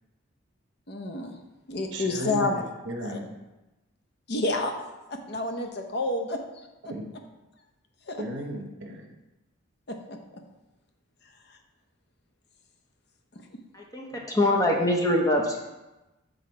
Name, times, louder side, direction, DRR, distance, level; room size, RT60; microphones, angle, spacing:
voice 1, 0.9-1.4 1.7-2.6 3.0-3.2 4.3-4.7 5.1-6.4 6.8-6.9 8.1-8.2 9.9-10.2 11.5-11.6 13.3-13.4, left 2 dB, 50° left, 4 dB, 0.6 m, -29 dB
voice 2, 1.9-3.4 6.9-7.1 8.2-9.1 14.1-14.2, right 1 dB, 60° right, 2 dB, 0.9 m, -35 dB
voice 3, 13.7-15.7, left 1 dB, 15° left, 0 dB, 0.8 m, -24 dB
6.8 x 3.8 x 4.4 m, 1.0 s
head